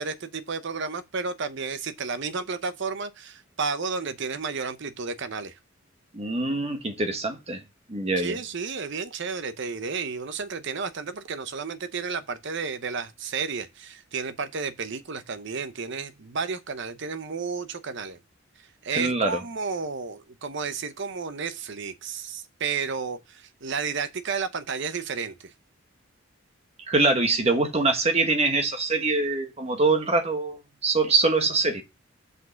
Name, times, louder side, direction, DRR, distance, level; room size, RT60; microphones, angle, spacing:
voice 1, 0.0-5.6 8.2-18.2 18.8-25.5, right 5 dB, 60° right, 0.7 m, -32 dB
voice 2, 6.1-7.6 7.9-8.4 19.0-19.4 26.9-31.8, right 3 dB, 30° right, 1.3 m, -24 dB
5.9 x 5.3 x 6.2 m
head